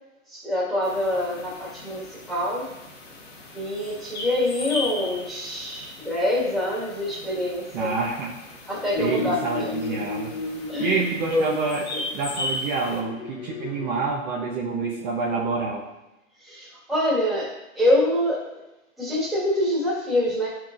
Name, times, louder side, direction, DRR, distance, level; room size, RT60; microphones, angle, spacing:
voice 1, 0.3-2.7 3.5-7.9 8.7-9.7 10.7-11.0 11.3-11.5 11.9-12.1 16.4-18.4 19.0-20.5, left 1 dB, ahead, -7 dB, 1.7 m, -25 dB
Forest ambient afternoon, 0.8-13.0, left 2 dB, 55° left, 1.9 m, -37 dB
voice 2, 7.7-8.3 9.0-10.3 10.8-11.8 12.1-15.8, right 4 dB, 35° right, -2 dB, 0.9 m, -27 dB
sound 1, 8.9-11.9 12.9-14.1, left 4 dB, 85° left, 1.1 m, -33 dB
10.0 x 4.5 x 2.5 m, 0.94 s
hypercardioid pair, 140°, 40 cm